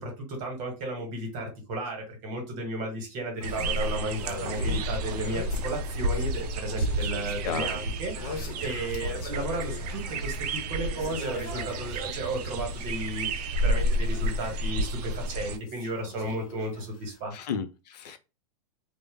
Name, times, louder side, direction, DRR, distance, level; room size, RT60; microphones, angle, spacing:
voice 1, 0.0-17.3, right 1 dB, 40° right, 1.1 m, -34 dB
sound 1, 3.4-14.9 15.1-17.2, left 3 dB, 55° left, 0.9 m, -43 dB
sound 2, 3.4-15.6, right 1 dB, 75° right, 0.4 m, -31 dB
voice 2, 7.4-7.8 17.3-18.2, left 7 dB, 85° left, 0.5 m, -33 dB
2.1 x 2.0 x 3.2 m
supercardioid pair, 145°, 20 cm